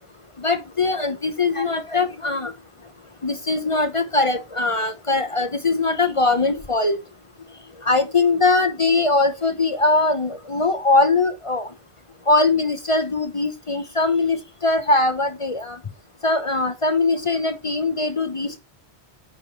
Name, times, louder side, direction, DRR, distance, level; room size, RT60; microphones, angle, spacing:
voice 1, 0.4-2.5 3.2-7.0 7.9-11.7 12.3-15.8 16.2-18.6, left 3 dB, 35° left, 0.8 m, -21 dB
8.9 x 4.7 x 4.2 m
omnidirectional pair, 1.1 m